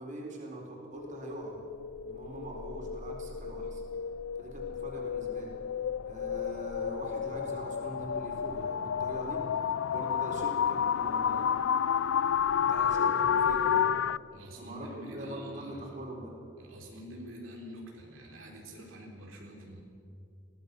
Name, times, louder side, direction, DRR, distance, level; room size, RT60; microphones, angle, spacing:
voice 1, 0.0-1.6 2.0-3.8 4.4-5.5 6.0-9.4 9.9-11.5 12.6-14.0 14.6-14.9 15.1-16.3, right 1 dB, 40° right, -1 dB, 4.3 m, -42 dB
sound 1, 0.9-14.2, left 8 dB, 80° left, 0.4 m, -31 dB
sound 2, 1.7-13.6, equal, 15° left, 3.0 m, -53 dB
voice 2, 14.3-16.1 16.6-19.8, equal, 85° right, -1 dB, 3.8 m, -46 dB
23.0 x 17.5 x 6.9 m, 2.5 s
head